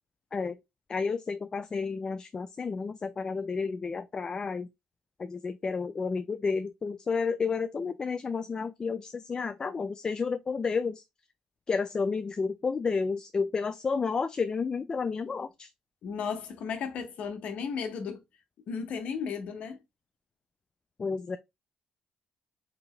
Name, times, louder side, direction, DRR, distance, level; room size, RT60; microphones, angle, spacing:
voice 1, 0.9-4.7 5.2-11.0 11.7-15.7 21.0-21.4, left 5 dB, 35° left, 0.3 m, -31 dB
voice 2, 16.0-18.2 18.7-19.8, left 6 dB, 70° left, 0.9 m, -34 dB
3.9 x 2.8 x 3.1 m
cardioid pair, 80°, 2 cm